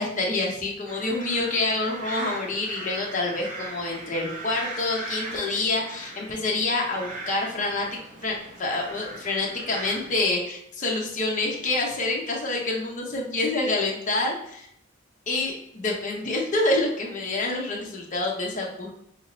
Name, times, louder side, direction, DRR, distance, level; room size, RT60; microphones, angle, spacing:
voice 1, 0.0-7.9 8.2-14.7 15.3-19.0, left 2 dB, 40° left, -1 dB, 0.7 m, -27 dB
sound 1, 0.9-10.2, right 2 dB, 40° right, 0.8 m, -39 dB
2.8 x 2.8 x 4.0 m, 0.72 s
head